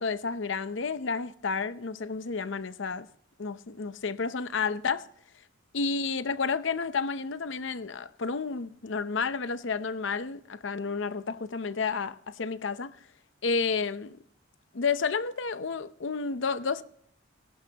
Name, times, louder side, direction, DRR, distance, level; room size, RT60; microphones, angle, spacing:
voice 1, 0.0-3.1 3.4-5.1 5.7-13.0 13.4-14.2 14.7-16.8, left 5 dB, 70° left, 0.7 m, -31 dB
20.0 x 11.0 x 2.9 m
head